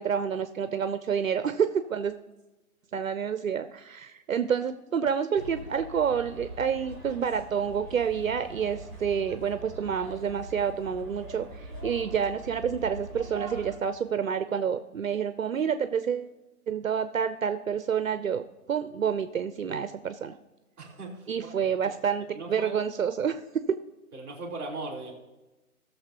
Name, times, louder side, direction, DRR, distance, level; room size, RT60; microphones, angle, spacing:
voice 1, 0.0-2.1 2.9-16.3 16.7-18.4 18.7-20.4 21.3-23.8, right 7 dB, 65° right, 10 dB, 0.7 m, -28 dB
sound 1, 5.4-13.8, right 1 dB, 15° left, 4.1 m, -42 dB
voice 2, 20.8-21.5 21.8-21.9 22.3-22.7 24.1-25.1, right 2 dB, 10° right, -6 dB, 2.5 m, -39 dB
19.0 x 6.8 x 2.9 m, 1.1 s
hypercardioid pair, 180°, 44 cm